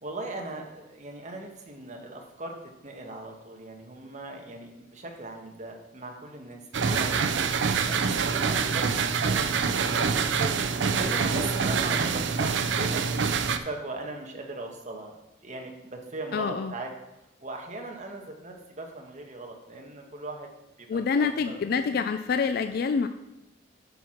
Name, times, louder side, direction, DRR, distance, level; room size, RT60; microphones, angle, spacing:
voice 1, 0.0-2.5 2.8-9.5 9.9-15.1 15.4-16.9 17.4-20.5 20.9-21.6, right 2 dB, 40° right, 2 dB, 1.2 m, -39 dB
sound 1, 6.7-13.6, right 5 dB, 75° right, 0.5 m, -26 dB
voice 2, 16.3-16.7 20.9-23.1, left 5 dB, 55° left, 9 dB, 0.3 m, -27 dB
9.2 x 4.6 x 5.8 m, 0.93 s
head